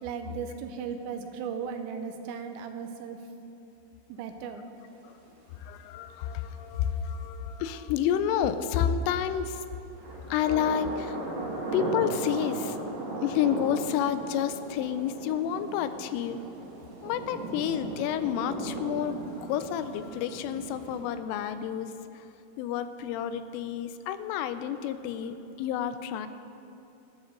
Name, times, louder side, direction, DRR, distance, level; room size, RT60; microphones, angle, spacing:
voice 1, 0.0-3.2 4.2-4.6 11.5-11.6, right 6 dB, 85° right, 6 dB, 2.7 m, -36 dB
voice 2, 5.5-9.6 10.3-12.8 13.2-16.4 17.0-22.2 22.6-26.3, left 9 dB, 85° left, 11 dB, 3.1 m, -30 dB
sound 1, 9.9-21.0, right 2 dB, 60° right, 4.3 m, -37 dB
18.5 x 12.5 x 3.8 m, 2.8 s
omnidirectional pair, 5.7 m